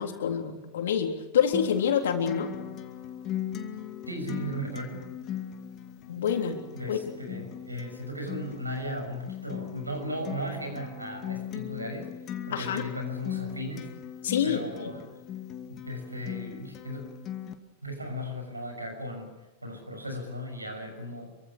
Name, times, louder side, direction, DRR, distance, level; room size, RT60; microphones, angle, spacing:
voice 1, 0.0-2.5 6.1-6.6 6.9-7.0 12.5-12.9 14.2-14.9, left 8 dB, 60° left, 5 dB, 3.6 m, -27 dB
Acoustic guitar, 1.5-17.5, left 10 dB, 35° left, 2.2 m, -39 dB
voice 2, 4.1-5.1 6.7-12.1 12.5-13.9 14.4-15.2 15.7-17.0 17.8-21.3, equal, 85° right, 5 dB, 6.5 m, -36 dB
27.5 x 24.0 x 6.7 m, 1.1 s
figure-of-eight pair, 90°, 0 cm